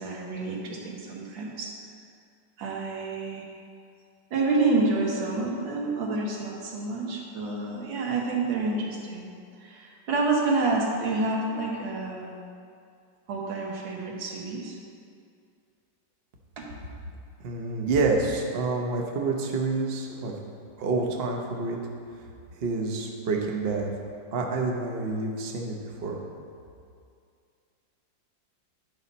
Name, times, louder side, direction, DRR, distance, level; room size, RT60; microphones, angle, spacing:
voice 1, 0.0-1.7 2.6-3.5 4.3-9.3 9.6-12.3 13.3-14.8 16.6-16.7, right 3 dB, 85° right, -2 dB, 1.9 m, -28 dB
voice 2, 17.4-20.3 20.8-21.8 22.6-23.9 24.3-26.2, right 3 dB, 45° right, 1 dB, 0.8 m, -28 dB
9.9 x 5.4 x 4.1 m, 2.3 s
omnidirectional pair, 2.0 m